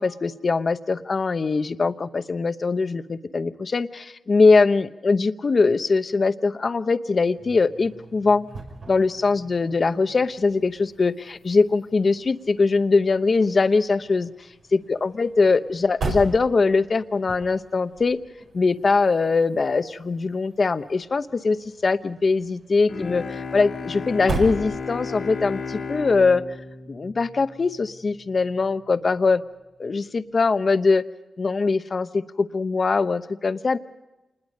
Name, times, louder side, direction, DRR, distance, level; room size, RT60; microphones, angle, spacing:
voice 1, 0.0-8.5 8.9-14.3 14.7-18.2 18.5-26.4 26.9-29.4 29.8-31.0 31.4-33.8, left 4 dB, 50° left, 11 dB, 0.9 m, -22 dB
sound 1, 7.2-25.3, right 3 dB, 85° right, 5.4 m, -39 dB
Bowed string instrument, 22.9-28.0, left 4 dB, 75° left, 2.1 m, -34 dB
27.5 x 21.0 x 5.3 m, 1.0 s
cardioid pair, 75°, 0 cm